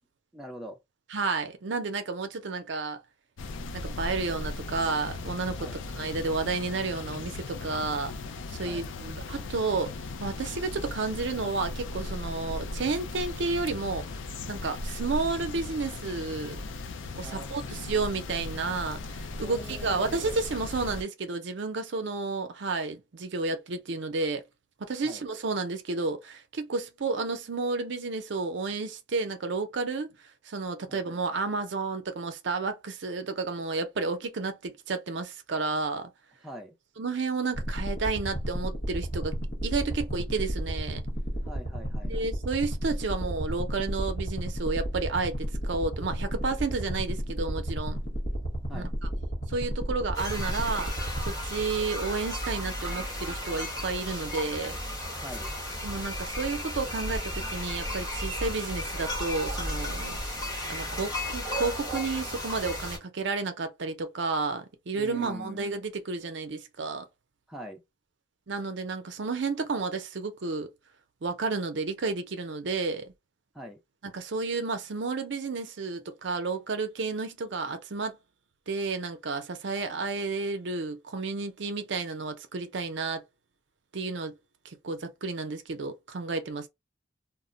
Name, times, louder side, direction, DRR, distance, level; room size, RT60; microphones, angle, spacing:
voice 1, 0.3-0.8 5.6-5.8 8.6-8.9 17.2-17.9 19.4-20.2 25.0-25.2 30.9-31.0 36.4-36.7 41.4-42.3 48.7-48.9 55.2-55.5 64.9-65.7 67.5-67.8 73.5-73.8, equal, ahead, 0.5 m, -43 dB
voice 2, 1.1-3.0 3.7-5.7 5.9-8.1 8.5-9.9 10.2-14.0 14.5-16.6 17.2-24.4 24.8-30.1 30.4-36.1 37.0-41.0 42.0-48.0 48.7-48.8 49.5-50.9 51.2-54.8 55.8-60.2 60.7-67.1 68.5-70.7 71.2-73.1 74.1-78.2 78.7-83.2 83.9-84.3 84.6-86.7, right 3 dB, 60° right, 0.5 m, -31 dB
sound 1, 3.4-21.0, left 3 dB, 70° left, 0.4 m, -37 dB
sound 2, 37.5-51.9, equal, 50° left, 0.9 m, -33 dB
sound 3, 50.1-63.0, left 1 dB, 20° left, 1.0 m, -34 dB
2.1 x 2.1 x 3.7 m
head